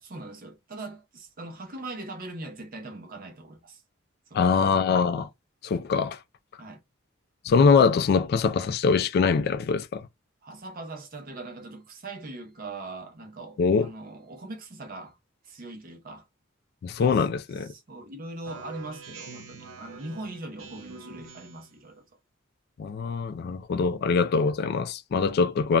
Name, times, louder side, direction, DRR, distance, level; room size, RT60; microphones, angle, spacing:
voice 1, 0.0-3.8 4.3-4.8 6.6-6.8 10.4-15.2 15.4-16.3 17.1-17.3 17.6-22.0, right 2 dB, 45° right, 0.7 m, -41 dB
voice 2, 4.3-5.3 5.6-6.2 7.4-10.1 13.6-13.9 16.8-17.7 22.8-25.8, left 5 dB, 50° left, 0.3 m, -23 dB
Speech synthesizer, 18.4-21.8, right 4 dB, 85° right, 0.7 m, -45 dB
2.3 x 2.1 x 3.5 m
head